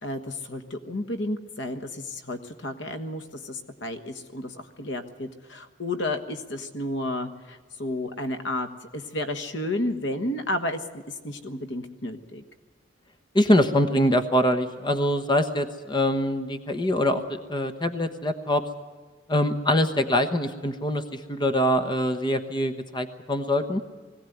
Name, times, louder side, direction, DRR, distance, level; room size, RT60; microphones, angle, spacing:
voice 1, 0.0-12.4, left 1 dB, 75° left, 8 dB, 1.5 m, -32 dB
voice 2, 13.3-18.6 19.3-23.8, left 1 dB, 25° left, 9 dB, 1.1 m, -24 dB
21.0 x 16.5 x 9.3 m, 1.4 s
head